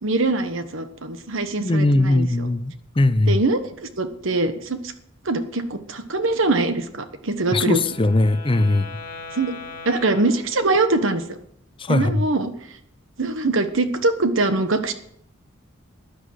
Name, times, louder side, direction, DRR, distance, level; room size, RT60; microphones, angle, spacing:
voice 1, 0.0-2.5 3.3-4.9 5.2-7.8 9.3-9.6 9.8-11.4 11.9-12.5 13.2-14.9, right 2 dB, 65° right, 1.2 m, -23 dB
voice 2, 1.6-3.4 7.5-8.9 11.8-12.2, left 2 dB, 25° left, 0.7 m, -20 dB
Wind instrument woodwind instrument, 7.5-11.1, left 4 dB, 40° left, 2.2 m, -40 dB
13.0 x 10.0 x 6.5 m
head